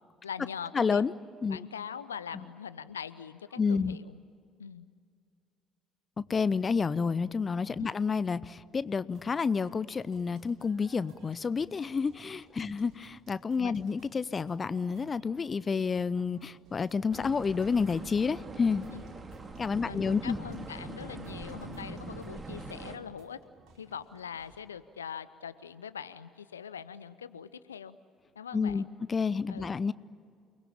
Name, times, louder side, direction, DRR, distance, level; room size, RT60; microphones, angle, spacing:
voice 1, 0.2-1.0 1.5-4.2 4.6-4.9 7.8-7.9 12.6-12.7 13.6-13.8 18.9-19.1 19.8-23.4 23.8-28.0 28.4-28.9 29.5-29.7, left 7 dB, 80° left, 15 dB, 0.6 m, -42 dB
voice 2, 0.7-1.1 1.4-1.6 2.3-2.4 3.6-4.0 6.2-18.8 19.6-20.4 28.5-29.9, left 5 dB, 30° left, 18 dB, 0.6 m, -29 dB
sound 1, 9.1-24.6, right 5 dB, 55° right, 5.0 m, -62 dB
sound 2, 17.1-23.0, right 2 dB, 25° right, 2.9 m, -43 dB
29.0 x 21.0 x 8.6 m, 2.2 s
figure-of-eight pair, 50°, 0 cm